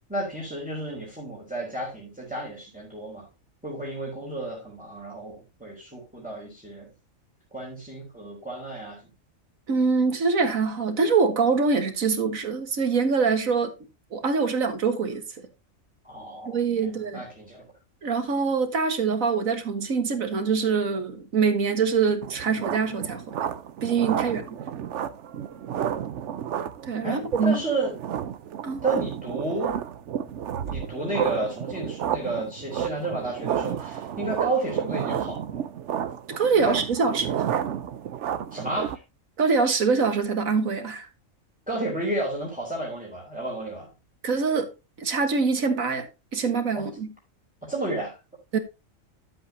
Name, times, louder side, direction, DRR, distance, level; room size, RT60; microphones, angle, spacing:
voice 1, 0.1-3.3 3.6-6.9 7.5-9.0 16.0-17.7 27.0-28.0 28.8-29.8 30.6-35.6 36.6-36.8 38.5-39.0 41.7-43.9 46.7-46.9 47.6-48.2, right 2 dB, 5° right, 3.4 m, -32 dB
voice 2, 9.7-13.7 14.1-15.2 16.4-17.2 18.0-23.4 23.8-24.5 26.9-27.6 28.6-28.8 36.4-37.5 39.4-41.1 44.2-44.7 45.0-46.1 46.3-47.1 48.5-48.6, right 5 dB, 90° right, 2.0 m, -24 dB
sound 1, 22.2-39.0, right 9 dB, 65° right, 1.0 m, -31 dB
12.0 x 7.8 x 2.8 m
omnidirectional pair, 1.4 m